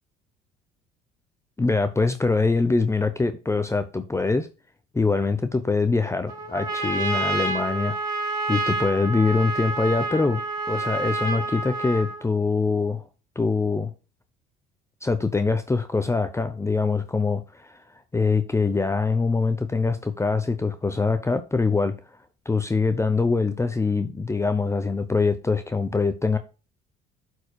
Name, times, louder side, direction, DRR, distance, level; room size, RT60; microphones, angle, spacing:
voice 1, 1.6-4.5 4.9-8.0 8.5-10.4 10.7-13.0 13.4-13.9 15.0-17.8 18.1-21.9 22.5-26.4, left 4 dB, 15° left, 0.7 m, -23 dB
Trumpet, 6.3-12.3, right 2 dB, 20° right, 4.0 m, -28 dB
12.0 x 4.7 x 2.3 m
hypercardioid pair, 70°, 21 cm